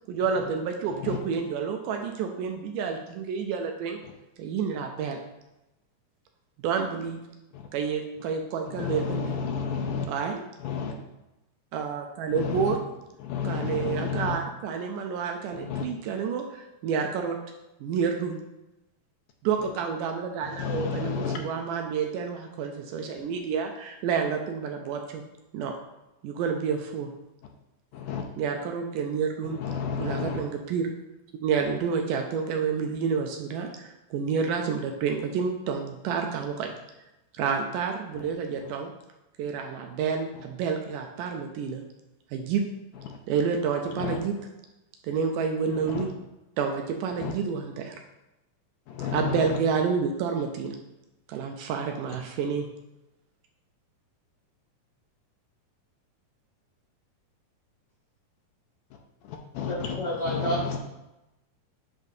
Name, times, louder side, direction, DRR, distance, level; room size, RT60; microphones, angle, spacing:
voice 1, 0.1-4.0 4.4-5.2 6.6-7.2 7.7-9.4 10.1-10.4 11.7-12.8 13.4-17.4 17.8-18.4 19.4-25.2 25.5-25.8 26.2-27.1 28.4-29.6 30.0-30.9 31.4-36.7 37.4-38.9 39.4-41.8 42.3-42.6 43.3-44.3 45.0-46.1 46.6-48.0 49.1-50.8 51.3-52.7, right 6 dB, 80° right, 3 dB, 2.1 m, -29 dB
voice 2, 8.8-10.1 10.6-10.9 12.4-12.7 13.2-14.4 15.7-15.8 20.6-21.4 27.9-28.2 29.6-30.4 43.1-43.2 44.0-44.2 45.9-46.0 47.2-47.3 48.9-49.6 59.6-59.7 60.3-60.8, left 6 dB, 75° left, 2 dB, 2.1 m, -30 dB
voice 3, 59.6-60.6, equal, 40° left, -5 dB, 1.7 m, -29 dB
10.5 x 4.1 x 2.7 m, 0.96 s
omnidirectional pair, 4.0 m